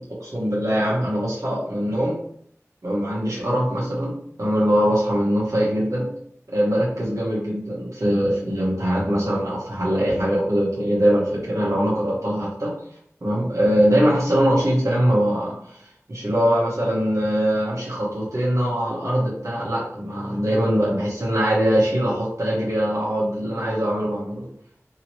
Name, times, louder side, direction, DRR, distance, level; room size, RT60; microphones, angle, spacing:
voice 1, 0.0-2.2 2.8-6.1 6.5-12.7 13.2-24.5, equal, 70° right, -6 dB, 1.0 m, -22 dB
2.8 x 2.8 x 3.0 m, 0.65 s
wide cardioid pair, 45°, 5 cm